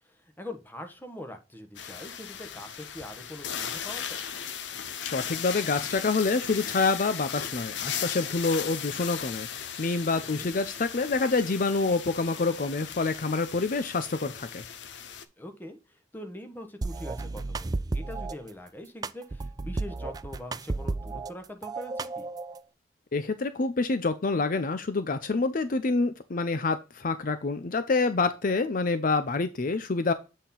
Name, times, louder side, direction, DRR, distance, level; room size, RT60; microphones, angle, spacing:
voice 1, 0.4-4.2 10.2-10.5 15.4-15.8 16.1-22.3, left 1 dB, 10° left, 1.1 m, -43 dB
sound 1, 1.8-15.3, left 8 dB, 75° left, 0.7 m, -37 dB
voice 2, 5.0-14.6 23.1-30.1, left 3 dB, 50° left, 0.5 m, -27 dB
sound 2, 16.8-18.3 19.0-21.3 21.6-22.6, right 3 dB, 20° right, 0.3 m, -33 dB
8.0 x 4.3 x 3.8 m
head